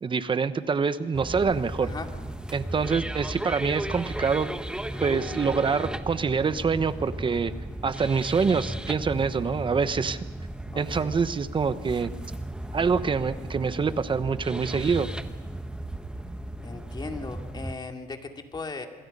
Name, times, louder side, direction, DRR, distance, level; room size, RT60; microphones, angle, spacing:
voice 1, 0.0-1.9 2.5-4.5 5.0-7.5 7.8-10.2 10.8-12.1 12.7-15.1, right 5 dB, 30° right, 13 dB, 1.0 m, -25 dB
sound 1, 1.1-17.7, right 1 dB, 5° right, 1.1 m, -35 dB
voice 2, 1.8-2.1 10.7-11.2 16.6-18.9, left 3 dB, 25° left, 4 dB, 2.6 m, -37 dB
27.0 x 21.5 x 5.5 m, 1.3 s
cardioid pair, 110°, 17 cm